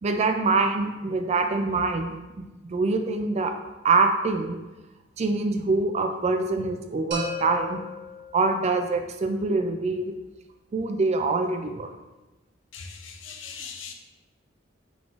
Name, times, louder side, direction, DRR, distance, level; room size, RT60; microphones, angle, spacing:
voice 1, 0.0-2.1 2.7-3.5 3.8-4.6 5.2-7.8 8.3-10.1 10.7-11.9, right 3 dB, 35° right, 6 dB, 0.3 m, -24 dB
sound 1, 7.1-8.9, left 3 dB, 60° right, 1.1 m, -36 dB
voice 2, 12.7-13.9, left 6 dB, 70° left, 3 dB, 0.6 m, -40 dB
4.6 x 3.9 x 2.5 m, 1.1 s
head